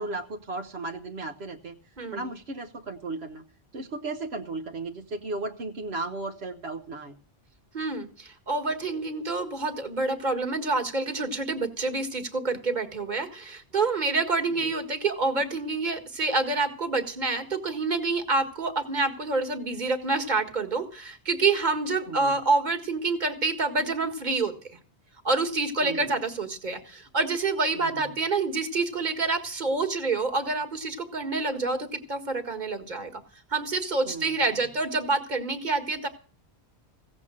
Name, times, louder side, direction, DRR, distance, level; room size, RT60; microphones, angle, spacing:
voice 1, 0.0-1.8 2.1-3.4 3.7-7.1 14.5-14.6 22.1-22.4 25.8-26.0 27.7-28.0 34.1-34.3, right 2 dB, 70° right, 4 dB, 1.3 m, -35 dB
voice 2, 2.0-2.3 7.7-24.5 25.2-33.2 33.5-36.1, right 3 dB, 45° right, 7 dB, 1.8 m, -27 dB
16.0 x 7.6 x 7.5 m, 0.40 s
omnidirectional pair, 1.1 m